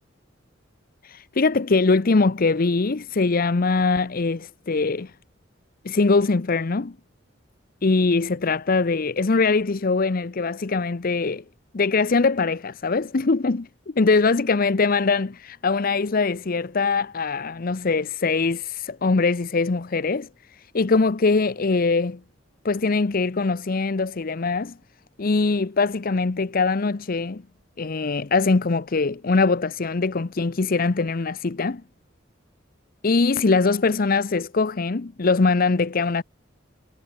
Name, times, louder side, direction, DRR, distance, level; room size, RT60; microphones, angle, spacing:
voice 1, 1.0-5.1 5.8-6.9 7.8-11.4 11.7-13.7 14.0-22.2 22.6-24.7 25.2-27.4 27.8-31.8 33.0-36.2, left 4 dB, 50° left, 0.7 m, -22 dB
head